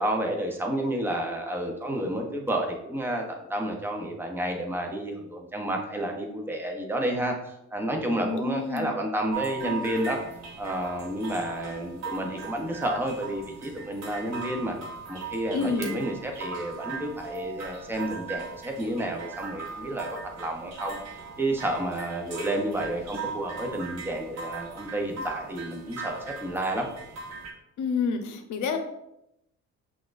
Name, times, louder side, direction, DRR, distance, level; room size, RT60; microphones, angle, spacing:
voice 1, 0.0-10.2 10.6-14.8 15.1-21.0 21.4-26.9, right 1 dB, 5° right, 1 dB, 0.7 m, -30 dB
voice 2, 8.2-8.9 15.5-15.9 27.8-28.8, left 5 dB, 80° left, 6 dB, 0.7 m, -28 dB
sound 1, 9.3-27.5, right 5 dB, 60° right, 1.0 m, -39 dB
5.9 x 2.4 x 2.5 m, 0.83 s
cardioid pair, 90°, 30 cm